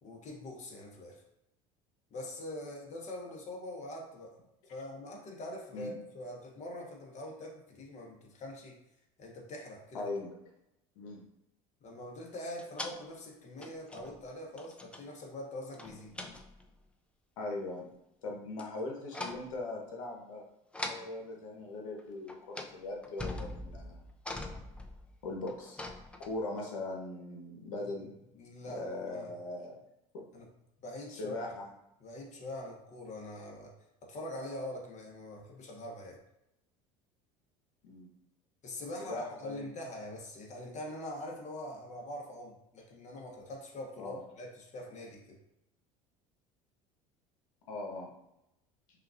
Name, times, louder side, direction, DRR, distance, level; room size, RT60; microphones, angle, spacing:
voice 1, 0.0-1.2 2.1-4.4 4.7-8.8 9.2-10.0 11.8-16.1 27.8-28.1 28.3-29.3 30.3-30.5 30.8-31.5 32.0-33.7 34.0-36.2 38.6-45.4, left 1 dB, 45° left, -1 dB, 1.3 m, -43 dB
voice 2, 9.9-10.3 11.0-11.2 17.4-17.9 18.2-20.4 20.9-24.0 25.2-25.8 26.2-28.1 28.6-29.8 30.1-30.3 31.1-31.7 37.8-38.1 39.0-39.6 44.0-44.2 47.7-48.1, left 2 dB, 85° left, 0 dB, 1.1 m, -40 dB
sound 1, 12.6-13.0 13.6-14.3 14.6-15.0 15.7-16.7 18.6-18.8 19.1-19.5 20.7-21.1 22.0-22.1 22.3-22.7 23.0-26.6, left 2 dB, 5° left, 0.5 m, -42 dB
5.6 x 2.5 x 2.5 m, 0.86 s
supercardioid pair, 90°, 17 cm